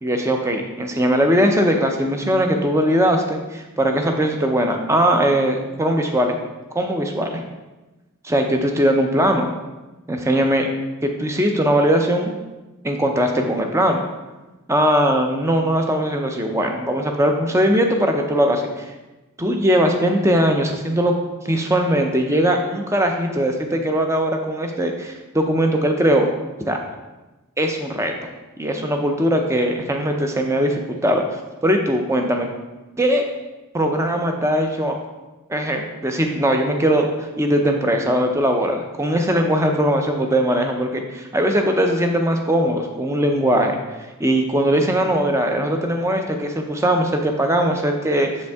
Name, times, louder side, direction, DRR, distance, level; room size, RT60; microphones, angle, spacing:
voice 1, 0.0-6.3 6.7-7.4 8.2-9.4 10.1-10.7 11.0-12.3 12.8-14.0 14.7-18.9 19.4-21.1 21.4-26.3 26.7-26.8 27.6-28.3 28.6-31.2 31.6-32.5 33.0-33.2 33.7-34.9 35.5-43.8 44.2-48.3, equal, 10° right, 3 dB, 0.6 m, -20 dB
7.2 x 5.3 x 3.5 m, 1.1 s
head